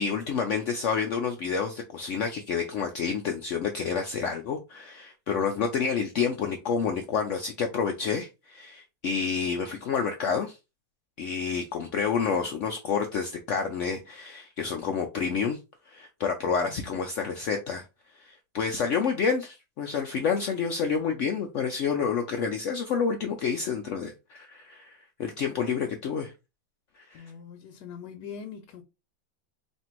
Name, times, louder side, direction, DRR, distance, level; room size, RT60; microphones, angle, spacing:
voice 1, 0.0-10.6 11.2-15.6 15.9-17.9 18.2-26.3 27.1-27.3, left 6 dB, 90° left, 0.6 m, -29 dB
voice 2, 16.5-17.0 27.1-28.8, left 7 dB, 75° left, 1.1 m, -43 dB
3.3 x 2.5 x 4.3 m
omnidirectional pair, 1.9 m